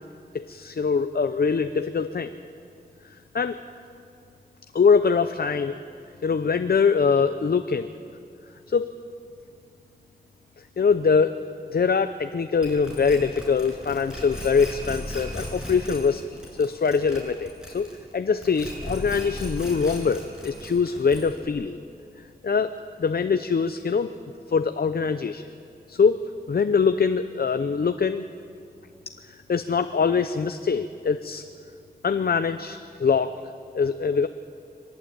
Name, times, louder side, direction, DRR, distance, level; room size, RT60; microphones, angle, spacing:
voice 1, 0.3-2.3 3.3-3.6 4.7-5.8 6.2-7.9 8.7-8.9 10.8-11.3 11.7-21.8 22.4-24.1 24.5-25.4 25.9-28.2 29.2-31.4 32.0-33.3 33.7-34.3, left 5 dB, 65° left, 9 dB, 0.7 m, -23 dB
sound 1, 12.6-18.1 18.4-21.5, equal, 5° right, 7.2 m, -36 dB
23.0 x 18.5 x 8.9 m, 2.5 s
wide cardioid pair, 95°, 17 cm